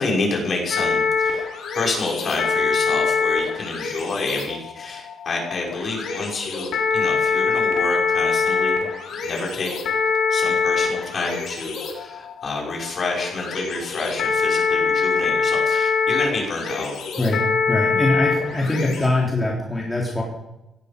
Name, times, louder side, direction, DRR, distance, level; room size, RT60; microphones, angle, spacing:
voice 1, 0.0-1.5 1.7-8.9 9.2-9.7 10.3-17.0, left 3 dB, 45° left, -1 dB, 6.1 m, -28 dB
sound 1, 0.7-19.1, left 5 dB, 70° left, 4.1 m, -24 dB
voice 2, 17.2-20.2, left 2 dB, 15° left, -3 dB, 3.6 m, -23 dB
17.5 x 15.0 x 5.3 m, 0.93 s
cardioid pair, 90°, 0 cm